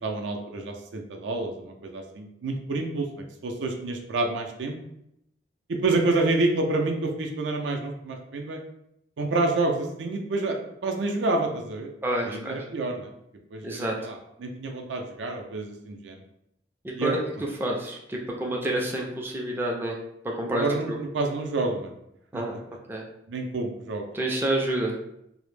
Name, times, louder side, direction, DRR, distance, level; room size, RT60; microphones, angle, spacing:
voice 1, 0.0-3.1 3.4-4.8 5.7-8.6 9.2-11.9 12.2-13.1 13.5-16.2 16.9-17.2 20.5-21.9 22.3-22.6 23.3-24.1, right 2 dB, 80° right, 2 dB, 0.4 m, -28 dB
voice 2, 12.0-12.6 13.6-13.9 16.8-17.2 17.6-20.0 20.2-21.0 22.3-22.5 22.9-23.0 24.1-24.9, right 1 dB, 10° right, -1 dB, 0.3 m, -28 dB
2.0 x 2.0 x 3.1 m, 0.79 s
head